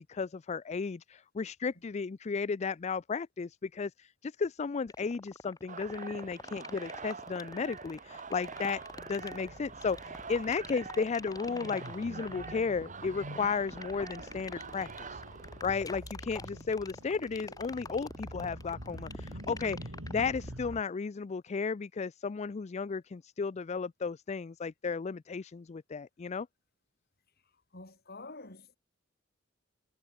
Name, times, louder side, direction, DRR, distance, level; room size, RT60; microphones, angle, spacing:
voice 1, 0.0-15.2 15.6-26.5, left 5 dB, 35° left, 0.4 m, -34 dB
sound 1, 4.9-20.8, left 2 dB, 20° left, 3.9 m, -45 dB
sound 2, 5.7-16.1, right 5 dB, 40° right, 2.9 m, -46 dB
sound 3, 7.9-20.8, equal, 90° right, 7.2 m, -47 dB
voice 2, 27.7-28.8, left 2 dB, 50° left, 6.8 m, -47 dB
head